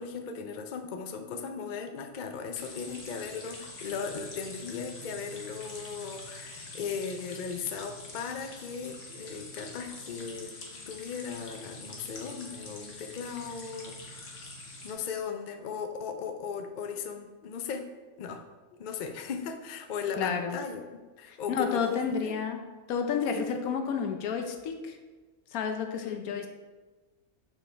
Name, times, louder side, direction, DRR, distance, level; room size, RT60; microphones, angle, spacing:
voice 1, 0.0-10.6 10.9-17.8 18.2-18.4 18.7-22.4 23.3-23.4 26.0-26.3, left 6 dB, 65° left, 5 dB, 0.4 m, -37 dB
sound 1, 2.5-14.9, left 2 dB, 50° left, 1.2 m, -45 dB
voice 2, 20.2-20.6 21.3-22.6 22.9-25.0 25.5-26.5, left 6 dB, 90° left, 5 dB, 1.2 m, -30 dB
7.1 x 4.5 x 3.3 m, 1.3 s
omnidirectional pair, 1.5 m